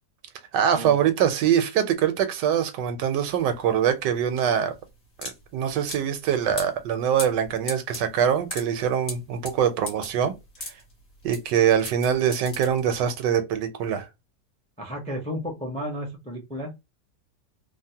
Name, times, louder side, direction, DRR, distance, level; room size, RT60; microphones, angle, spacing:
voice 1, 0.5-4.7 5.2-10.3 11.2-14.1, right 9 dB, 90° right, 1.3 m, -23 dB
sound 1, 3.3-13.2, left 2 dB, 45° left, 1.3 m, -39 dB
voice 2, 14.8-16.7, equal, 10° left, 0.4 m, -33 dB
3.5 x 2.1 x 2.7 m
omnidirectional pair, 1.8 m